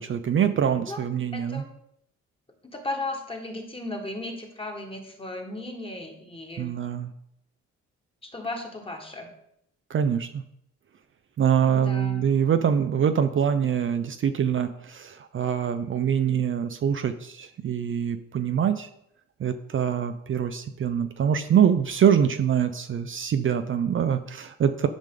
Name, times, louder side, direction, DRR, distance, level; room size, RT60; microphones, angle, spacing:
voice 1, 0.0-1.6 6.6-7.1 9.9-10.4 11.4-18.9 19.4-24.9, right 8 dB, 45° right, 8 dB, 0.5 m, -24 dB
voice 2, 1.3-1.7 2.6-6.7 8.2-9.3 11.7-12.2, left 2 dB, 20° left, 3 dB, 1.6 m, -35 dB
10.5 x 5.2 x 3.8 m, 0.76 s
cardioid pair, 90°, 30 cm